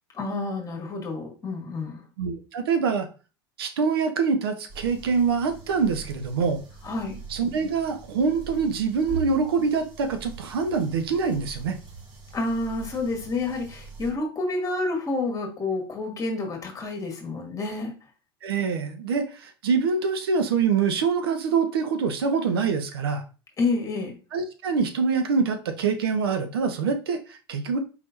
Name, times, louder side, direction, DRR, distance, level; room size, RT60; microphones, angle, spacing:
voice 1, 0.1-2.0 6.8-7.2 12.3-17.9 23.6-24.1, left 3 dB, 25° left, 2 dB, 1.7 m, -29 dB
voice 2, 2.2-3.1 3.6-6.6 7.3-11.8 18.4-23.2 24.3-27.8, right 5 dB, 80° right, 7 dB, 0.9 m, -25 dB
sound 1, 4.7-14.1, right 4 dB, 40° right, 1.7 m, -42 dB
4.6 x 3.7 x 2.7 m, 0.33 s
hypercardioid pair, 90°, 12 cm